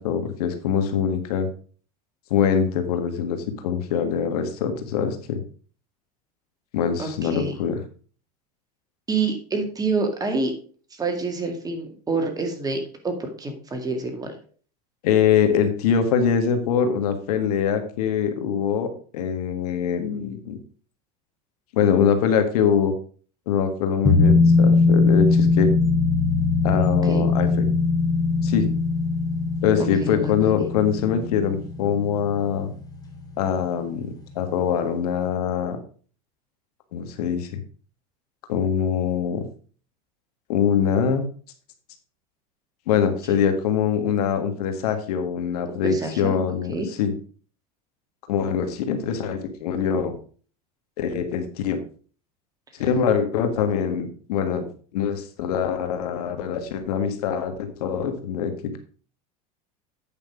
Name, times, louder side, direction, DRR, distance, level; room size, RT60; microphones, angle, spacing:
voice 1, 0.0-1.5 2.3-5.4 6.7-7.8 15.0-18.9 19.1-20.6 21.7-22.9 23.5-25.7 26.6-27.7 28.4-28.7 29.6-32.7 33.4-35.8 36.9-37.6 38.5-39.5 40.5-41.2 42.9-47.1 48.3-50.2 51.0-51.8 52.8-54.7 54.9-58.8, left 7 dB, 85° left, 7 dB, 1.6 m, -23 dB
voice 2, 7.0-7.6 9.1-10.5 11.0-14.4 27.0-27.3 29.8-30.7 45.8-46.4 46.7-46.9, right 3 dB, 20° right, 5 dB, 2.0 m, -27 dB
sound 1, 24.0-33.2 33.5-33.6, left 4 dB, 20° left, 3.0 m, -20 dB
9.1 x 5.4 x 4.9 m, 0.42 s
supercardioid pair, 125°, 19 cm